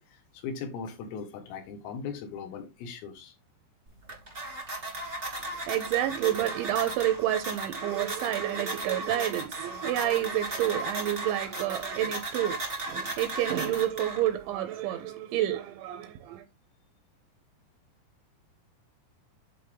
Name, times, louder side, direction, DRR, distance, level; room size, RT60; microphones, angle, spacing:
voice 1, 0.1-3.4, left 6 dB, 80° left, 4.2 m, -39 dB
sound 1, 3.9-14.5, right 2 dB, 30° right, 1.1 m, -36 dB
voice 2, 5.4-16.4, right 13 dB, 80° right, 2.8 m, -29 dB
10.5 x 4.2 x 3.6 m
omnidirectional pair, 5.9 m